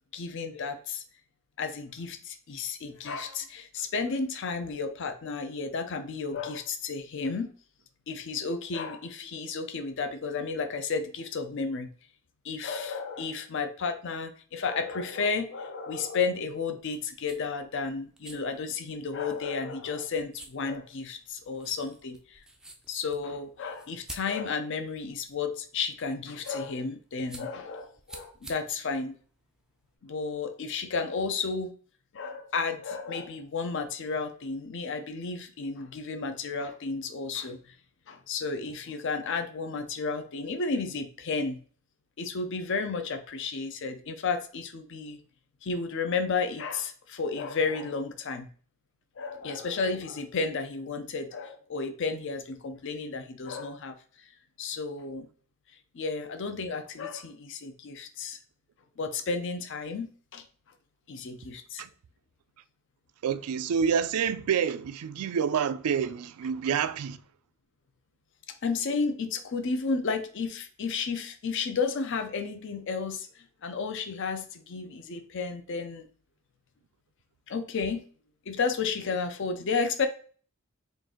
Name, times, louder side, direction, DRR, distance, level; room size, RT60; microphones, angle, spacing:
voice 1, 0.1-1.0 1.6-7.5 8.1-11.9 12.4-22.4 22.9-29.2 30.0-31.7 32.1-37.6 38.1-41.6 42.2-45.2 45.6-48.5 49.2-53.9 54.6-55.3 55.9-58.4 59.0-60.4 61.1-61.8 68.6-73.3 73.6-76.1 77.5-78.1 78.5-80.1, left 4 dB, 55° left, 0.5 m, -32 dB
sound 1, 16.8-29.9, right 2 dB, 5° right, 0.3 m, -51 dB
voice 2, 63.2-67.2, right 7 dB, 80° right, 0.3 m, -28 dB
3.9 x 2.5 x 3.6 m
head